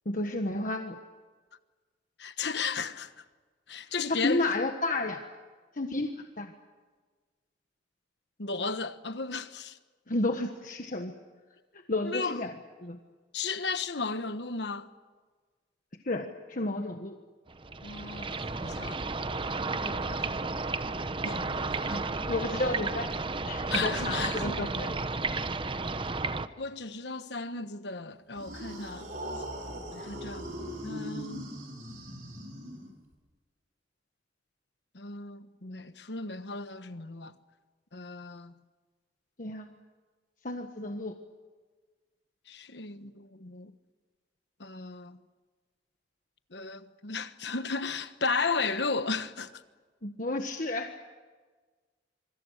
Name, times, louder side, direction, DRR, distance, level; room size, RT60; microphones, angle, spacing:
voice 1, 0.0-1.0 4.1-5.2 5.7-6.5 10.1-11.1 11.7-12.5 12.8-13.0 16.0-17.2 21.9-23.1 23.4-24.9 39.4-39.8 40.4-41.1 50.0-50.9, left 2 dB, 50° left, 1.5 m, -32 dB
voice 2, 2.2-3.2 3.7-4.4 8.4-9.8 12.0-12.4 13.3-14.9 17.8-18.3 18.6-19.0 19.7-20.2 21.2-22.0 23.7-24.6 26.6-29.1 29.9-30.5 30.8-31.4 34.9-37.4 37.9-38.5 42.5-43.7 44.6-45.2 46.5-49.6, left 4 dB, 65° left, 1.3 m, -34 dB
sound 1, 17.5-26.5, right 3 dB, 30° right, 0.9 m, -32 dB
sound 2, 28.3-33.1, equal, 50° right, 5.9 m, -40 dB
26.0 x 24.5 x 6.6 m
head